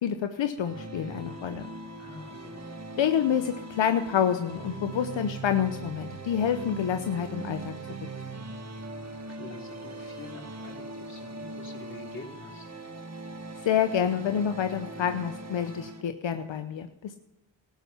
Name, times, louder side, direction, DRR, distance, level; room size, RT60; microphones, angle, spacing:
voice 1, 0.0-1.7 3.0-7.7 13.6-17.2, left 8 dB, 70° left, 8 dB, 0.9 m, -28 dB
sound 1, 0.6-16.0, right 2 dB, 35° right, 1.8 m, -40 dB
voice 2, 2.0-2.6 9.3-12.7, left 2 dB, 25° left, 0 dB, 3.9 m, -46 dB
13.5 x 12.0 x 5.7 m, 0.92 s
cardioid pair, 50°, 47 cm